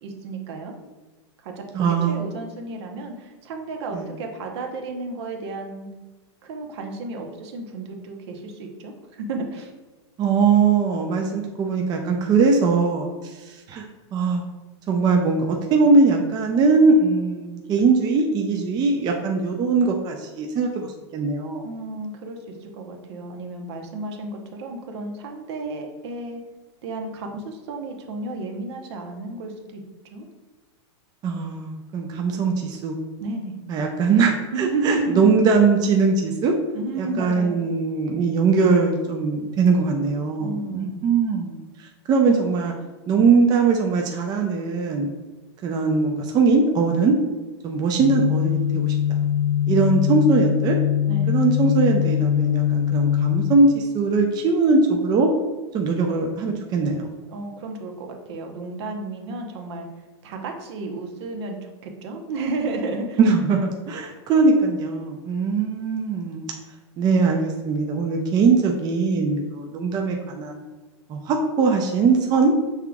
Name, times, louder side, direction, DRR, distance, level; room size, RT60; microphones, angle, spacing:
voice 1, 0.0-0.7 1.4-5.9 6.4-8.9 9.2-9.7 21.6-26.4 26.8-29.8 30.1-30.3 33.2-33.6 34.5-35.4 36.7-37.6 40.4-41.0 51.1-51.4 57.3-59.9 60.2-63.2, right 3 dB, 65° right, 3 dB, 0.9 m, -32 dB
voice 2, 1.7-2.2 3.9-4.1 10.2-13.9 14.1-14.4 14.9-21.7 31.2-33.0 33.7-36.5 37.0-42.7 43.1-45.1 45.6-47.2 47.6-48.9 49.7-50.8 51.3-55.3 55.7-57.1 63.2-66.5 67.0-70.6 71.1-72.5, right 4 dB, 25° right, 2 dB, 0.5 m, -21 dB
sound 1, 48.0-53.5, left 11 dB, 65° left, 0.4 m, -22 dB
5.6 x 3.6 x 2.3 m, 1.2 s
hypercardioid pair, 135°, 15 cm